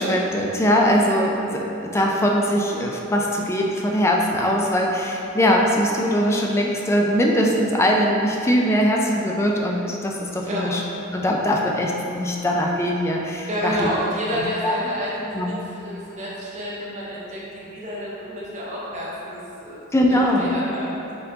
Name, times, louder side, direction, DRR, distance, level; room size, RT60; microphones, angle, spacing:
voice 1, 0.0-10.8 11.1-13.9 14.6-14.7 15.3-15.6 19.9-20.5, equal, 15° left, -1 dB, 0.3 m, -21 dB
voice 2, 13.5-20.9, equal, 35° right, -7 dB, 0.7 m, -29 dB
4.3 x 3.8 x 2.7 m, 2.9 s
head